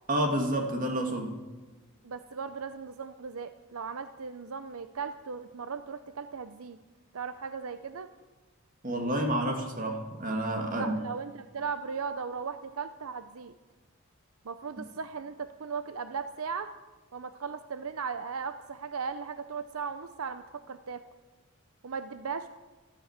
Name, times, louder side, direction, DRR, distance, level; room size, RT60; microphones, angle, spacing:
voice 1, 0.1-1.4 8.8-11.0, right 1 dB, 35° right, 4 dB, 2.4 m, -29 dB
voice 2, 2.0-6.8 7.1-8.1 10.7-13.5 14.4-16.7 17.1-21.0 21.8-22.5, right 5 dB, 75° right, 11 dB, 0.6 m, -37 dB
14.0 x 13.0 x 7.4 m, 1.2 s
head